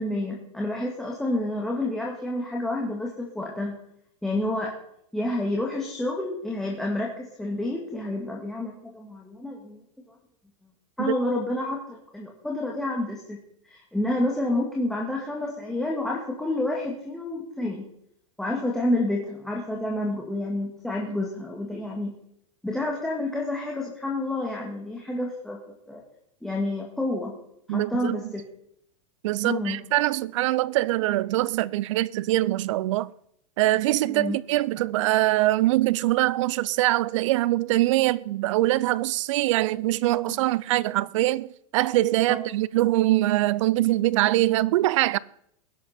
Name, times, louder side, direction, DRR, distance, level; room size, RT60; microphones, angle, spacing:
voice 1, 0.0-3.8 4.2-4.7 5.1-9.8 11.0-13.4 13.6-17.9 18.4-22.1 22.6-25.6 25.9-26.0 26.4-27.3 27.7-28.4 29.4-29.8 34.1-34.4 40.3-40.4 42.3-42.4, left 1 dB, ahead, 2.0 m, -29 dB
voice 2, 27.7-28.3 29.2-33.1 33.6-45.2, right 16 dB, 65° right, 0.6 m, -23 dB
20.0 x 11.0 x 4.3 m
supercardioid pair, 150°, 17 cm